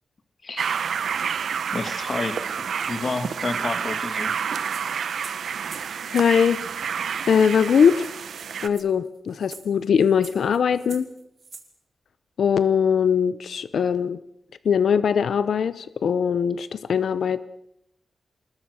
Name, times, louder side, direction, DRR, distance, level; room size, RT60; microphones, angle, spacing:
voice 1, 0.4-0.8 1.7-2.4 2.9-4.3, left 3 dB, 35° left, 11 dB, 1.9 m, -30 dB
sound 1, 0.6-8.7, right 7 dB, 85° right, 1.0 m, -29 dB
sound 2, 4.2-6.4 7.3-7.4 7.6-7.7 7.9-11.7, right 4 dB, 40° right, 3.3 m, -45 dB
voice 2, 6.1-6.6 7.3-8.1 8.6-11.1 12.4-14.2 14.6-17.4, left 7 dB, 85° left, 15 dB, 0.8 m, -21 dB
27.0 x 21.0 x 6.4 m, 0.78 s
wide cardioid pair, 180°, 0 cm